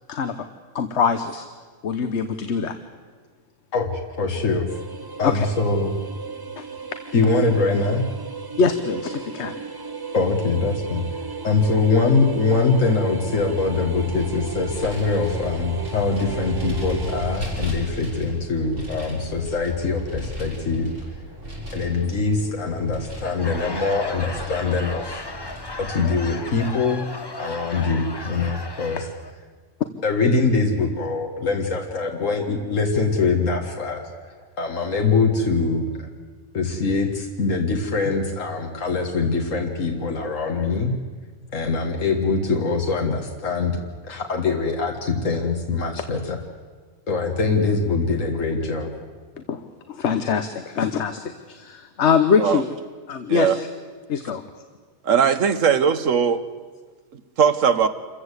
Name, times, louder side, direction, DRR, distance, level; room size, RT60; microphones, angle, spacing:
voice 1, 0.7-1.5 1.8-2.7 5.2-5.5 6.6-6.7 8.6-9.6 49.5-49.6 49.9-52.7 53.1-53.7 54.1-54.4, left 6 dB, 60° left, 9 dB, 1.2 m, -23 dB
voice 2, 3.7-4.7 5.2-5.9 7.1-8.1 10.1-11.1 11.4-20.9 21.7-25.2 25.8-27.1 27.4-29.1 30.0-36.1 36.5-40.9 41.5-43.7 44.0-46.4 47.1-48.9, left 4 dB, 80° left, 2 dB, 2.0 m, -23 dB
sound 1, 4.7-17.4, right 4 dB, 20° right, 0.7 m, -35 dB
Vehicle, 13.3-26.5, left 1 dB, 60° right, 7.4 m, -35 dB
Laughter / Crowd, 23.1-29.3, left 2 dB, 20° left, 1.0 m, -36 dB
voice 3, 55.0-56.4 57.4-57.9, right 7 dB, 80° right, 11 dB, 1.5 m, -19 dB
27.0 x 15.0 x 8.2 m, 1.5 s
omnidirectional pair, 1.3 m